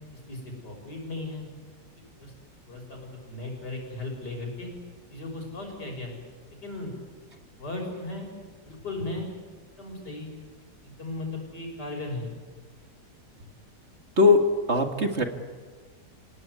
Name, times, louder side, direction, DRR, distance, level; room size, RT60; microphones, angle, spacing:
voice 1, 0.3-1.4 2.2-2.3 2.7-4.7 5.1-6.1 6.6-6.9 7.6-8.3 8.7-9.3 9.8-10.3 10.8-12.3, left 2 dB, 80° left, 2 dB, 7.0 m, -36 dB
voice 2, 14.7-15.2, left 3 dB, 40° right, 5 dB, 2.2 m, -19 dB
28.5 x 17.5 x 9.6 m, 1.5 s
omnidirectional pair, 1.8 m